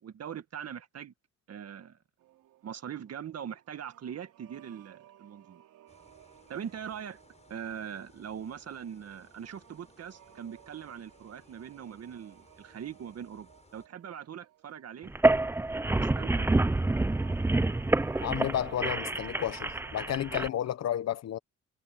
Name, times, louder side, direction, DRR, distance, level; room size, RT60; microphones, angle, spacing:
voice 1, 0.0-1.1 1.5-2.0 2.6-5.6 6.5-7.2 7.5-15.1 15.9-16.7, right 8 dB, 55° right, 1.9 m, -42 dB
sound 1, 2.2-20.8, right 13 dB, 85° right, 3.7 m, -57 dB
sound 2, 5.9-13.9, left 3 dB, 20° left, 7.5 m, -62 dB
sound 3, 15.1-20.5, right 2 dB, 10° right, 0.5 m, -27 dB
voice 2, 18.2-21.4, left 10 dB, 60° left, 0.9 m, -32 dB
cardioid pair, 90°, 30 cm